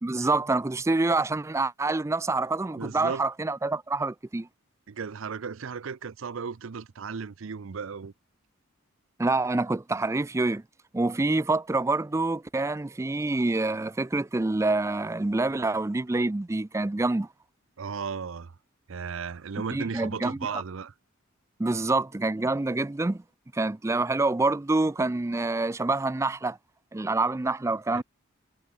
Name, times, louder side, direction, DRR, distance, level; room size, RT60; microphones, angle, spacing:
voice 1, 0.0-4.5 9.2-10.6 10.9-17.3 19.7-20.6 21.6-23.2 23.5-26.6 26.9-28.0, right 2 dB, 15° right, 0.4 m, -26 dB
voice 2, 2.8-3.3 4.9-8.1 17.8-18.5 18.9-20.9 27.9-28.0, right 5 dB, 65° right, 0.5 m, -35 dB
head